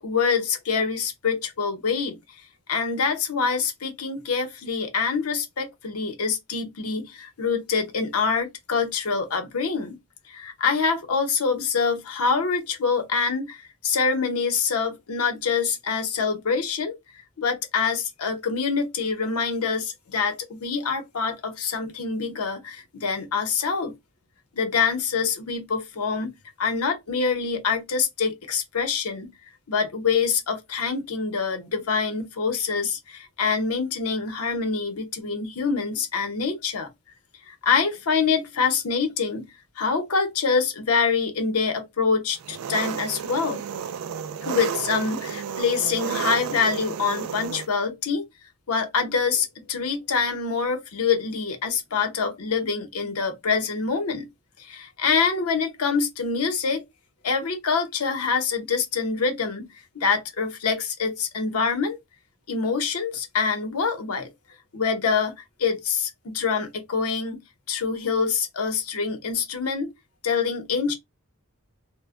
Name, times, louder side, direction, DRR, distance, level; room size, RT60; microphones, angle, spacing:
voice 1, 0.0-2.2 2.7-10.0 10.3-17.0 17.4-23.9 24.5-29.3 29.7-36.9 37.5-39.5 39.8-43.6 44.4-48.2 48.7-54.3 54.6-56.8 57.2-59.7 59.9-62.0 62.5-64.3 64.7-67.4 67.7-69.9 70.2-70.9, left 5 dB, 85° left, 0.8 m, -25 dB
Engine, 42.4-47.7, right 7 dB, 80° right, 0.3 m, -32 dB
2.1 x 2.1 x 3.5 m
head